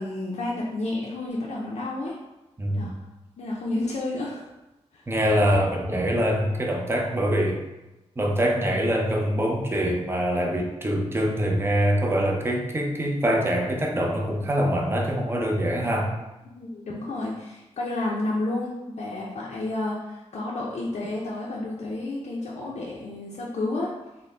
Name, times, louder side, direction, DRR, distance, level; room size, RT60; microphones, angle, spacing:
voice 1, 0.0-2.2 2.7-2.9 3.4-4.4 4.9-5.0 16.6-23.9, left 2 dB, 75° left, -4 dB, 0.5 m, -31 dB
voice 2, 2.6-2.9 5.1-7.6 8.2-16.1, equal, 20° right, 0 dB, 0.5 m, -24 dB
3.8 x 2.1 x 3.2 m, 1.0 s
wide cardioid pair, 95°, 12 cm